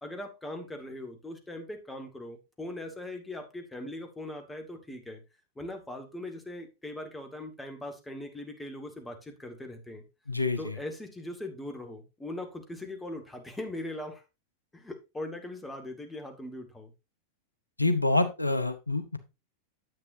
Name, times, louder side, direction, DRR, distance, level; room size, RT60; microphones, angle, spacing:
voice 1, 0.0-5.2 5.6-10.0 10.6-14.2 14.7-16.9, left 1 dB, 10° left, 1.9 m, -40 dB
voice 2, 10.3-10.7 17.8-19.2, left 2 dB, 85° left, 0.8 m, -27 dB
9.9 x 8.1 x 2.7 m
figure-of-eight pair, 90°, 0 cm